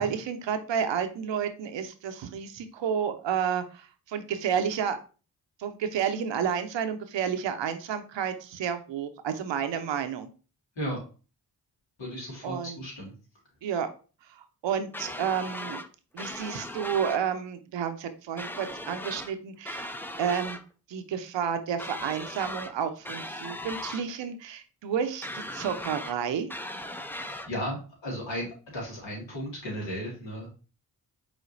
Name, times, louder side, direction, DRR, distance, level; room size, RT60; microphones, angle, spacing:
voice 1, 0.0-5.0 5.6-10.3 12.4-12.8 13.6-13.9 14.3-15.8 16.1-19.9 20.2-20.6 20.9-26.5, right 7 dB, 75° right, 8 dB, 0.7 m, -31 dB
voice 2, 12.0-13.1 27.2-30.5, equal, 75° left, -3 dB, 2.6 m, -35 dB
sound 1, 14.9-15.9 16.2-17.2 18.4-19.3 19.6-20.6 21.8-22.7 23.0-24.0 25.2-26.2 26.5-27.5, left 1 dB, 5° left, 0.4 m, -38 dB
5.0 x 3.9 x 2.6 m, 0.35 s
cardioid pair, 50°, 45 cm